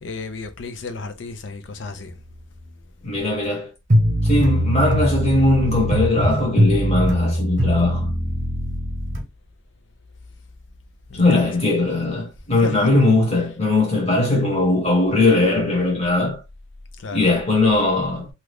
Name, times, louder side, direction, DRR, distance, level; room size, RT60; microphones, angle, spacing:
voice 1, 0.0-2.2 3.3-3.4 11.1-11.5 12.6-12.9 13.4-13.5 17.0-17.3, left 3 dB, 65° left, 0.6 m, -34 dB
voice 2, 3.0-3.7 4.2-8.1 11.2-16.4 17.1-18.3, left 2 dB, 30° left, 1.1 m, -19 dB
sound 1, 3.9-9.2, equal, 40° right, 0.9 m, -21 dB
2.8 x 2.4 x 3.4 m
head